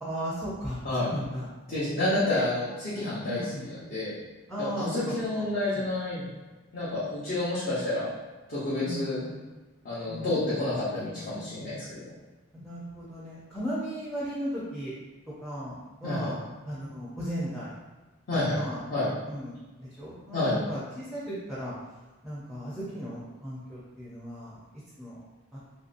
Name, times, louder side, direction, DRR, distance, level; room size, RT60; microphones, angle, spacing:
voice 1, 0.0-1.5 2.0-2.4 3.2-3.7 4.5-5.5 5.7-5.8 8.8-9.4 10.1-10.7 12.5-14.9 15.3-16.4 16.7-17.7 18.5-18.8 19.3-21.7 22.2-24.6 24.9-25.2 25.5-25.6, equal, ahead, -8 dB, 0.5 m, -36 dB
voice 2, 1.7-3.4 3.7-4.1 4.6-6.3 6.7-8.1 8.5-9.2 9.8-12.0 16.0-16.3 18.3-18.6 18.9-19.1 20.3-20.6, left 2 dB, 50° left, -11 dB, 0.8 m, -29 dB
3.0 x 2.7 x 2.5 m, 1.2 s
head